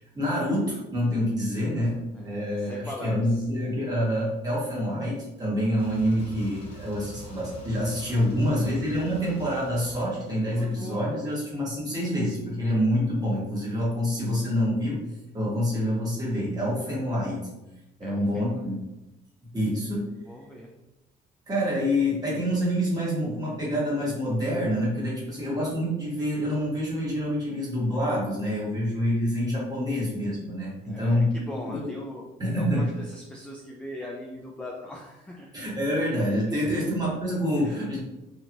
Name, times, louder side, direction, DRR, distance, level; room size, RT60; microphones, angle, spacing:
voice 1, 0.0-15.0 15.3-17.5 18.0-18.7 19.5-20.1 21.5-31.9 32.4-32.9 35.5-38.0, equal, 20° right, -6 dB, 1.4 m, -27 dB
voice 2, 1.8-3.4 8.6-8.8 18.0-18.7 20.3-20.7 30.8-32.2 32.5-35.5 36.5-36.9 37.6-37.8, left 1 dB, 5° left, -2 dB, 0.3 m, -40 dB
sound 1, 5.8-11.0, equal, 35° left, 1.0 m, -43 dB
3.0 x 2.6 x 2.5 m, 0.97 s
cardioid pair, 110°, 17 cm